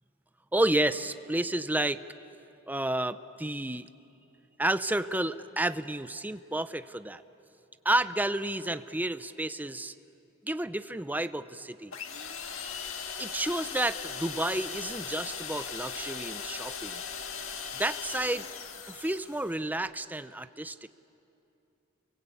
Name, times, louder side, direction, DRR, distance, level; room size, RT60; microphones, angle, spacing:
voice 1, 0.5-2.0 2.7-3.9 4.6-7.2 7.8-9.9 10.4-11.9 13.2-17.0 17.7-18.5 18.9-20.9, right 1 dB, 10° right, 12 dB, 0.6 m, -31 dB
sound 1, 11.9-19.5, left 6 dB, 65° left, 2.0 m, -38 dB
29.5 x 22.5 x 8.6 m, 2.8 s
head